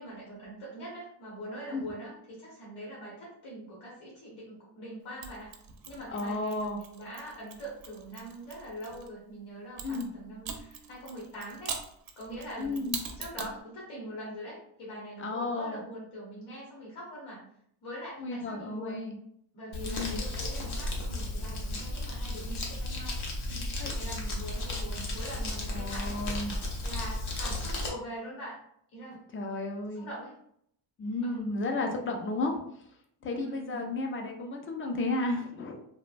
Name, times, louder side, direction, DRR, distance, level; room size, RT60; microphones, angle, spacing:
voice 1, 0.0-5.5 5.9-11.8 12.2-12.9 13.2-17.5 17.8-19.1 19.5-23.2 23.5-26.2 26.8-28.6 28.9-29.3 29.9-30.4 31.2-31.6 33.4-33.8, equal, 80° left, -5 dB, 1.2 m, -43 dB
Mechanisms, 5.2-9.1 9.8-13.6, right 6 dB, 50° right, 0.5 m, -42 dB
voice 2, 6.1-6.8 9.8-10.1 12.6-13.0 15.2-15.8 18.2-19.2 19.9-20.2 23.8-23.9 25.7-26.5 29.3-30.1 31.0-32.6 33.2-35.8, left 2 dB, 30° left, 3 dB, 0.4 m, -33 dB
Crumpling crinkling, 19.7-27.9, left 1 dB, 60° left, 0.8 m, -34 dB
2.9 x 2.1 x 2.5 m, 0.70 s
cardioid pair, 145°, 46 cm